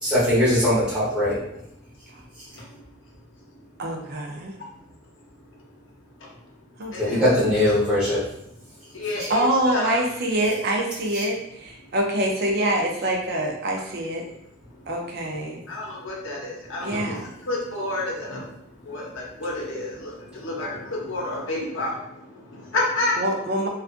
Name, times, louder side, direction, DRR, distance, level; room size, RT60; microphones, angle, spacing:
voice 1, 0.0-1.4 7.0-8.3 11.1-11.2, left 1 dB, 5° right, -12 dB, 1.1 m, -20 dB
voice 2, 2.5-2.9 3.5-3.7 5.4-5.7 6.2-7.2 7.5-7.6 8.7-10.0 14.7-14.9 15.7-23.2, left 2 dB, 65° left, -3 dB, 0.7 m, -31 dB
voice 3, 3.8-4.6 6.8-7.4 9.3-14.3 14.9-15.6 16.8-17.2 23.2-23.7, right 1 dB, 50° right, 0 dB, 0.5 m, -25 dB
2.4 x 2.3 x 2.5 m, 0.78 s
head